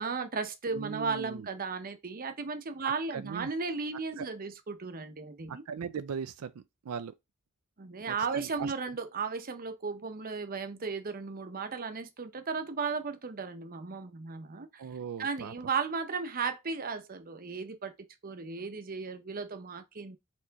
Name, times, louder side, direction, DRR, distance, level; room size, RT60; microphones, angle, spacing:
voice 1, 0.0-5.6 7.8-14.8 15.2-17.9 18.2-20.2, right 5 dB, 40° right, 0.7 m, -35 dB
voice 2, 0.7-1.5 3.1-3.5 4.2-4.3 5.5-6.5 6.9-7.1 8.1-8.7 14.8-15.5, right 7 dB, 85° right, 0.4 m, -38 dB
4.4 x 3.1 x 4.0 m
head